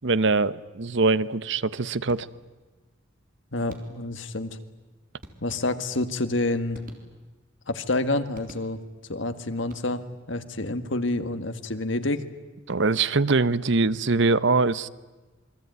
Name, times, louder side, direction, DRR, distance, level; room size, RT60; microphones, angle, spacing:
voice 1, 0.0-2.3 12.7-14.9, right 3 dB, 65° right, 17 dB, 0.9 m, -23 dB
sound 1, 2.1-2.6 3.7-4.3 5.2-6.1 6.7-7.5 8.3-9.1 9.6-10.3, right 1 dB, 45° right, 3.7 m, -49 dB
voice 2, 3.5-4.6 5.4-6.8 7.7-8.8 9.1-12.3, left 2 dB, 70° left, 10 dB, 1.9 m, -28 dB
28.0 x 22.5 x 9.4 m, 1.2 s
head